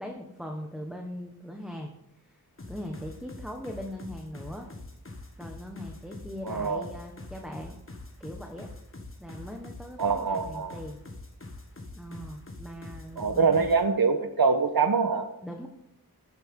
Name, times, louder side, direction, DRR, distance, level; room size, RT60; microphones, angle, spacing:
voice 1, 0.0-1.9 2.2-2.3 2.7-4.7 5.4-7.8 8.2-8.7 9.2-11.0 11.9-13.9 15.4-15.7, equal, ahead, 1 dB, 1.4 m, -40 dB
sound 1, 2.6-13.8, left 2 dB, 35° left, 1.6 m, -44 dB
voice 2, 6.4-6.8 10.0-10.8 13.2-15.3, right 5 dB, 70° right, 9 dB, 1.2 m, -24 dB
12.5 x 8.8 x 3.8 m, 0.79 s
wide cardioid pair, 60°, 37 cm